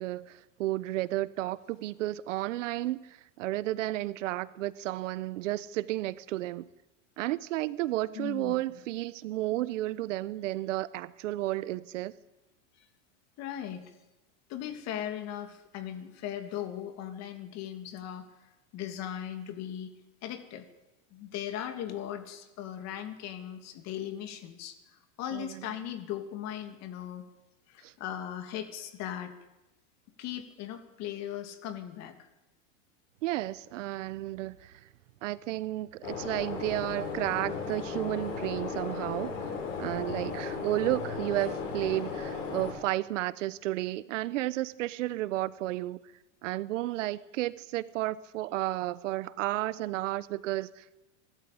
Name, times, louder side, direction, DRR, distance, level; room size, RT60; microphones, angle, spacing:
voice 1, 0.0-3.1 3.4-6.7 7.2-12.1 25.3-25.6 27.8-27.9 33.2-34.7 35.2-39.5 39.8-46.0 46.4-50.9, right 16 dB, 75° right, 1.0 m, -32 dB
voice 2, 8.1-8.5 12.8-12.9 13.4-13.9 14.5-18.3 18.7-19.9 20.2-20.7 21.1-24.8 25.2-27.2 27.7-29.3 30.2-32.3 40.1-40.4, left 10 dB, 45° left, 2.7 m, -38 dB
sound 1, 36.0-42.7, left 5 dB, 75° left, 7.1 m, -36 dB
24.0 x 13.0 x 8.6 m
supercardioid pair, 130°, 37 cm